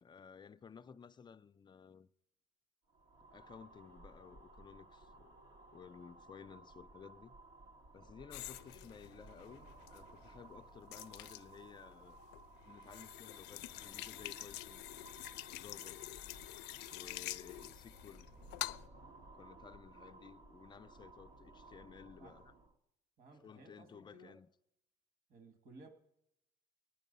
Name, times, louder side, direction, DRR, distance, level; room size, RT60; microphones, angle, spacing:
voice 1, 0.0-2.1 3.3-5.4 5.7-7.4 7.9-12.2 12.7-14.9 15.5-16.1 16.9-18.3 19.3-22.5 23.4-24.5, left 6 dB, 25° left, 0.5 m, -56 dB
sound 1, 2.9-22.8, right 2 dB, 75° right, 1.7 m, -58 dB
sound 2, 8.3-18.9, left 17 dB, 90° left, 0.4 m, -47 dB
voice 2, 23.2-24.3 25.3-25.9, right 2 dB, 60° right, 2.1 m, -58 dB
18.5 x 10.0 x 5.4 m
cardioid pair, 110°, 17 cm